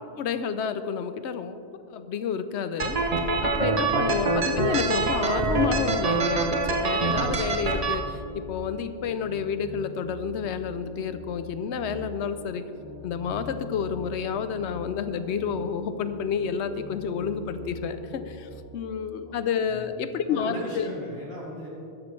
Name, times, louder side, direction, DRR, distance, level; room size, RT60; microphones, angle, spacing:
voice 1, 0.2-1.6 1.9-3.0 3.4-12.7 13.0-20.9, left 7 dB, 90° left, 11 dB, 0.9 m, -30 dB
sound 1, 1.6-18.5, left 2 dB, 30° left, 3.0 m, -43 dB
sound 2, 2.8-7.9, right 3 dB, 40° right, 0.7 m, -25 dB
voice 2, 3.7-4.1 19.2-19.3 19.7-19.9 20.2-21.7, left 1 dB, 60° left, -5 dB, 3.0 m, -38 dB
13.5 x 11.0 x 3.2 m, 2.7 s
omnidirectional pair, 1.1 m